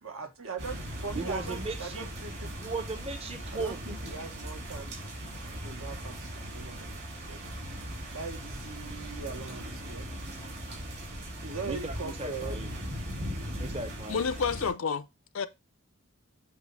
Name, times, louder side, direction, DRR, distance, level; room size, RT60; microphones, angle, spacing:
voice 1, 0.0-2.5 3.5-5.0 5.6-6.9 7.3-7.5 8.1-10.1 11.4-12.7, right 4 dB, 75° right, 1.3 m, -40 dB
sound 1, 0.6-14.7, equal, 50° right, 3.0 m, -39 dB
voice 2, 1.1-2.1 2.6-3.8 11.6-12.7 13.6-14.3, right 3 dB, 30° right, 0.7 m, -37 dB
voice 3, 14.1-15.1 15.3-15.5, left 5 dB, 65° left, 0.5 m, -29 dB
7.9 x 2.9 x 4.5 m
head